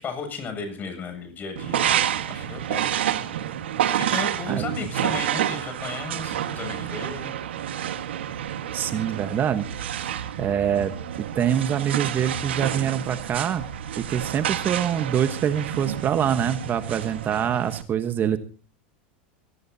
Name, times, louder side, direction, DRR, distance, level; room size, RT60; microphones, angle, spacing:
voice 1, 0.0-3.0 3.9-7.4, left 5 dB, 30° left, 7 dB, 7.6 m, -35 dB
sound 1, 1.6-17.8, right 10 dB, 90° right, 1.6 m, -29 dB
voice 2, 8.7-9.6 10.0-10.9 11.2-13.6 14.0-18.4, right 9 dB, 35° right, 10 dB, 1.2 m, -25 dB
23.5 x 18.0 x 2.8 m, 0.37 s
supercardioid pair, 115°, 6 cm